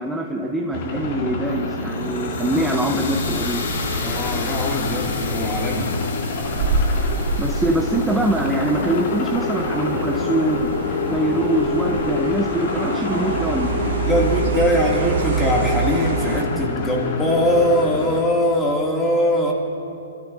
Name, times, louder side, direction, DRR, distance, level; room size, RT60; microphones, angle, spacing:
voice 1, 0.0-3.7 7.4-10.7 11.1-13.9, right 2 dB, 5° right, 2 dB, 0.8 m, -23 dB
sound 1, 0.7-18.2, left 3 dB, 45° left, 2.5 m, -27 dB
sound 2, 1.5-11.6, left 3 dB, 65° left, 2.9 m, -33 dB
voice 2, 4.0-5.9 14.1-19.5, left 1 dB, 10° left, -2 dB, 2.4 m, -21 dB
sound 3, 6.4-16.4, right 5 dB, 60° right, 2.0 m, -27 dB
25.0 x 14.0 x 2.7 m, 2.7 s
figure-of-eight pair, 115°, 0 cm